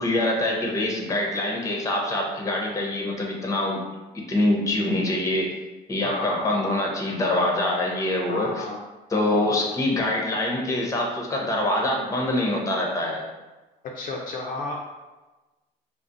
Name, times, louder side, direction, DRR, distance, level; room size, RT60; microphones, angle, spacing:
voice 1, 0.0-3.8 4.3-5.5 5.9-8.6 9.1-13.2, left 1 dB, 20° left, -1 dB, 0.7 m, -25 dB
voice 2, 6.0-6.8 8.3-8.8 9.1-9.3 13.9-14.7, left 2 dB, 55° left, -1 dB, 0.4 m, -32 dB
2.4 x 2.0 x 3.8 m, 1.2 s
cardioid pair, 110°, 17 cm